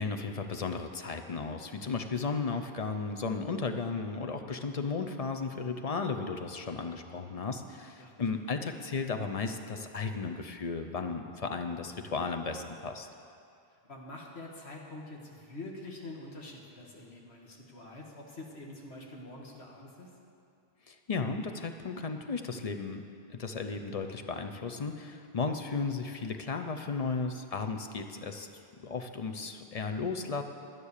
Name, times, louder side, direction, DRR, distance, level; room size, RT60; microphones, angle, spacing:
voice 1, 0.0-13.1 20.9-23.0 23.3-28.5 28.8-30.4, left 4 dB, 40° left, 6 dB, 0.7 m, -35 dB
voice 2, 13.8-20.1, left 2 dB, 85° left, -1 dB, 1.9 m, -46 dB
11.0 x 9.9 x 6.6 m, 2.5 s
omnidirectional pair, 1.1 m